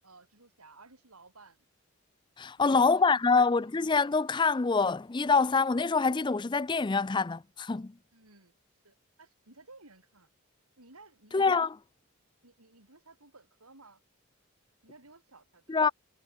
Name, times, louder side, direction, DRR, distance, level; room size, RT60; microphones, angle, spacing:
voice 1, 0.0-1.7 2.6-3.8 4.1-4.2 8.1-8.5 8.8-10.3 10.8-11.5 12.4-14.0 14.8-15.9, right 3 dB, 90° right, 7.8 m, -56 dB
voice 2, 2.4-7.9 11.3-11.7 15.7-15.9, left 4 dB, 20° left, 0.4 m, -25 dB
head